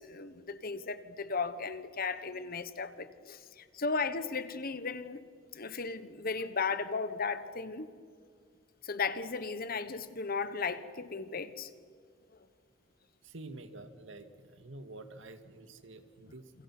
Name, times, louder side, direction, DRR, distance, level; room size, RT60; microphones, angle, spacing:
voice 1, 0.0-5.2 5.5-7.9 8.8-11.7, left 4 dB, 50° left, 1.3 m, -35 dB
voice 2, 13.2-14.3 14.6-16.5, right 2 dB, 75° right, 2.0 m, -48 dB
29.0 x 27.5 x 6.1 m
head